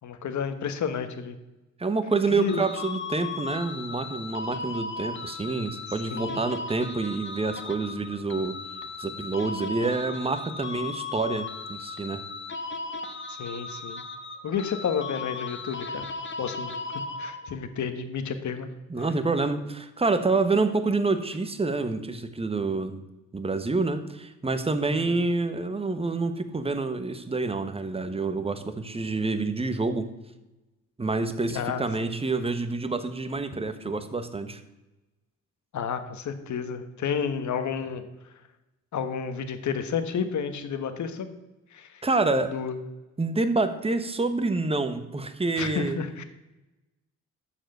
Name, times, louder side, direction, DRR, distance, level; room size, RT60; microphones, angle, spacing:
voice 1, 0.0-1.4 2.4-2.6 6.1-6.4 13.3-14.0 14.4-16.1 16.4-16.7 17.2-18.7 24.9-25.0 31.5-31.8 35.7-38.0 38.9-41.3 41.7-42.0 42.5-42.8 45.6-46.2, left 6 dB, 60° left, 9 dB, 1.4 m, -31 dB
voice 2, 1.8-8.6 9.0-12.2 18.9-23.0 23.3-30.1 31.0-34.6 42.0-42.5 43.2-46.0, right 3 dB, 20° right, 9 dB, 1.1 m, -27 dB
sound 1, 2.5-17.7, left 3 dB, 35° left, 1.2 m, -37 dB
13.0 x 4.9 x 7.8 m, 1.0 s
cardioid pair, 95°, 32 cm